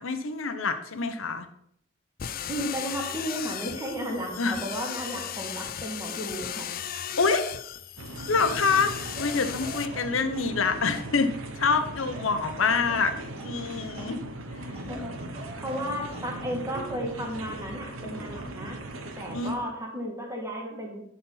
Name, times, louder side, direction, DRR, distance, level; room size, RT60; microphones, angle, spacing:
voice 1, 0.0-1.5 4.4-4.6 7.2-7.5 8.3-13.1 13.4-14.2 19.3-19.5, left 4 dB, 75° left, 8 dB, 1.0 m, -26 dB
sound 1, 2.2-9.9, left 9 dB, 45° left, 0.5 m, -36 dB
voice 2, 2.5-6.7 12.3-12.4 14.9-15.3 15.6-18.8 19.2-21.0, equal, 15° right, 0 dB, 2.2 m, -34 dB
sound 2, 8.0-19.6, right 1 dB, 85° right, 1.2 m, -39 dB
sound 3, 9.0-11.3 12.0-14.3 14.7-16.9 18.0-18.3, equal, 30° right, 1.7 m, -45 dB
11.5 x 4.3 x 5.6 m, 0.70 s
head